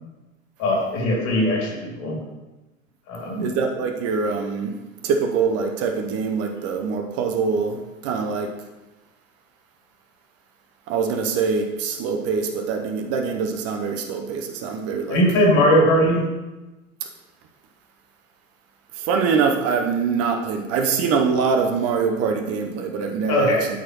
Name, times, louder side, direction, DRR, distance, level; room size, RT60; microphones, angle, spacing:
voice 1, 0.6-2.2 3.1-3.5 15.1-16.3 23.3-23.7, equal, 45° left, -2 dB, 2.8 m, -19 dB
voice 2, 3.4-4.7 5.0-8.5 10.9-15.2 19.0-23.6, right 5 dB, 40° right, 3 dB, 0.8 m, -24 dB
12.5 x 4.8 x 3.0 m, 1.1 s
figure-of-eight pair, 80°, 39 cm